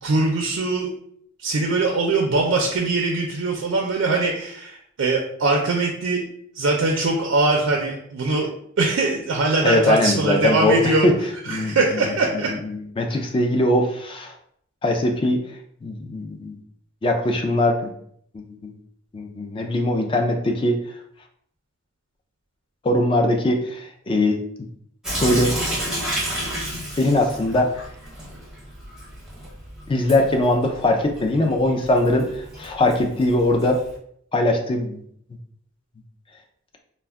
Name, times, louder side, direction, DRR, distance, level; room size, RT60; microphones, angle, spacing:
voice 1, 0.0-0.9 1.4-6.2 6.6-8.5 8.8-11.1 11.5-12.5 13.1-13.2, right 3 dB, 85° right, 0 dB, 0.4 m, -22 dB
voice 2, 9.6-11.2 11.5-11.8 12.3-14.3 14.8-15.4 15.8-16.6 17.0-17.9 18.3-18.7 19.1-20.8 22.8-24.4 25.2-25.6 27.0-27.7 29.9-33.8 34.3-35.0, left 1 dB, 25° left, 3 dB, 0.3 m, -21 dB
Sink (filling or washing) / Drip, 25.0-33.9, right 1 dB, 5° right, 0.7 m, -32 dB
2.2 x 2.1 x 3.4 m, 0.68 s
head